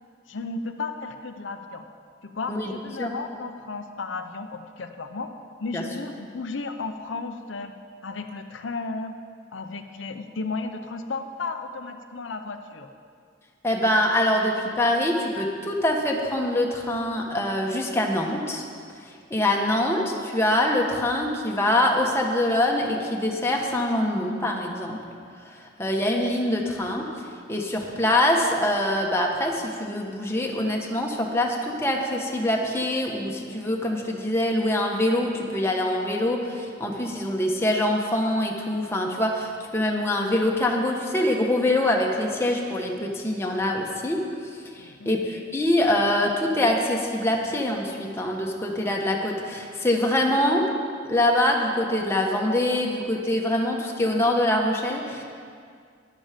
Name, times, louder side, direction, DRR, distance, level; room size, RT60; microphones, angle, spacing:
voice 1, 0.3-1.8 2.2-5.3 5.6-7.7 8.0-9.1 9.5-12.9 44.8-45.2, left 3 dB, 85° left, 6 dB, 0.7 m, -34 dB
voice 2, 13.6-18.6 19.3-25.0 25.8-27.0 27.5-44.2 44.7-50.7 51.0-55.2, left 1 dB, 15° left, 0 dB, 1.3 m, -24 dB
12.5 x 10.5 x 5.1 m, 2.2 s
head